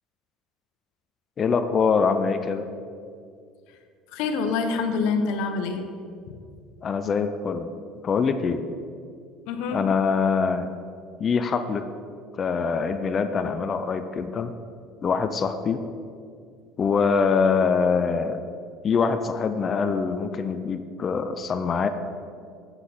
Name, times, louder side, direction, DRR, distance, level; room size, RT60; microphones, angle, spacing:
voice 1, 1.4-2.7 6.8-7.7 8.0-8.7 9.7-10.7 11.2-11.8 12.4-14.5 15.0-15.8 16.8-18.4 18.8-21.9, left 5 dB, 30° left, 9 dB, 0.4 m, -24 dB
voice 2, 4.1-5.9 6.3-6.4 9.5-9.8, left 4 dB, 70° left, 6 dB, 0.9 m, -26 dB
8.1 x 5.8 x 6.0 m, 2.3 s
cardioid pair, 150°, 0 cm